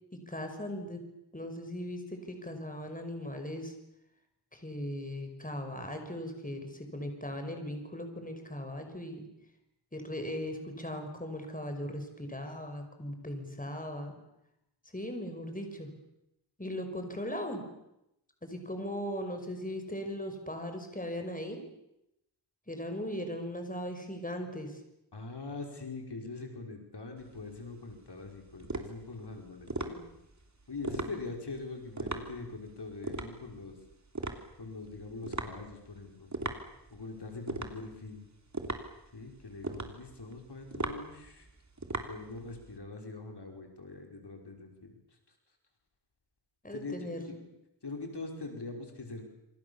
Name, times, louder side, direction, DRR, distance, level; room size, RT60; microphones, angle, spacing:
voice 1, 0.3-1.0 1.3-3.7 4.5-9.3 9.9-14.2 14.9-15.9 16.6-17.6 18.4-21.6 22.7-24.8 46.6-47.4, left 1 dB, 20° left, 5 dB, 5.8 m, -38 dB
voice 2, 25.1-30.0 30.7-33.8 34.6-36.5 36.9-38.2 39.1-41.5 42.1-44.9 46.7-47.4 47.8-49.3, left 3 dB, 75° left, 3 dB, 5.3 m, -43 dB
sound 1, 27.2-42.8, right 2 dB, 40° right, 3.4 m, -40 dB
27.0 x 27.0 x 7.2 m, 0.85 s
wide cardioid pair, 60°, 41 cm